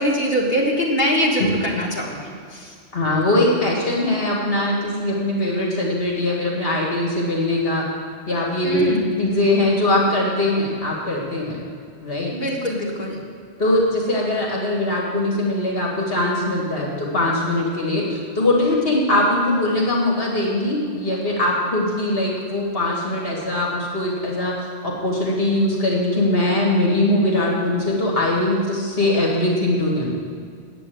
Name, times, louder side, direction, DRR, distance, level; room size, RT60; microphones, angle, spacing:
voice 1, 0.0-2.7 8.6-9.1 12.3-13.2, equal, 45° left, -4 dB, 1.9 m, -23 dB
voice 2, 2.9-7.8 8.3-8.9 9.2-11.6 12.0-12.3 13.6-24.5 24.8-30.1, left 1 dB, 60° left, -2 dB, 2.0 m, -21 dB
9.2 x 8.4 x 7.7 m, 2.2 s
omnidirectional pair, 1.1 m